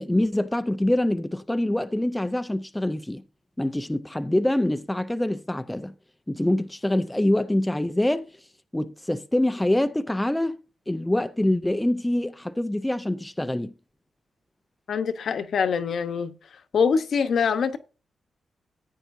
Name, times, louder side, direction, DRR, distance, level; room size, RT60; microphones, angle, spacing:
voice 1, 0.0-3.2 3.6-5.9 6.3-8.3 8.7-10.6 10.9-13.7, left 1 dB, 5° left, 0.5 m, -25 dB
voice 2, 14.9-16.3 16.7-17.8, left 6 dB, 55° left, 1.0 m, -24 dB
14.5 x 9.2 x 2.7 m
wide cardioid pair, 160°, 0 cm